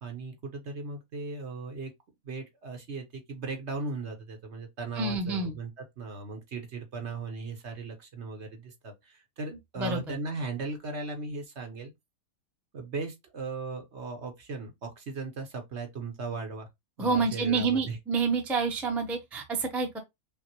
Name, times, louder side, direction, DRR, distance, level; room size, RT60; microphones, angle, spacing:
voice 1, 0.0-1.9 2.2-11.9 12.7-16.7 17.0-18.0, right 3 dB, 50° right, 1.1 m, -37 dB
voice 2, 5.0-5.5 9.8-10.0 17.0-20.0, right 4 dB, ahead, 0.5 m, -28 dB
5.5 x 2.1 x 2.9 m
omnidirectional pair, 1.5 m